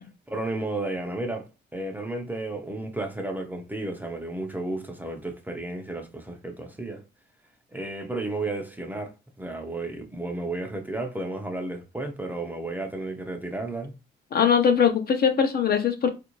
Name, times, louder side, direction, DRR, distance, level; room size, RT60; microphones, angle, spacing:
voice 1, 0.3-7.0 7.7-13.9, right 2 dB, 10° right, 0.7 m, -33 dB
voice 2, 14.3-16.1, left 7 dB, 50° left, 0.8 m, -21 dB
3.3 x 2.6 x 3.1 m
cardioid pair, 90°, 20 cm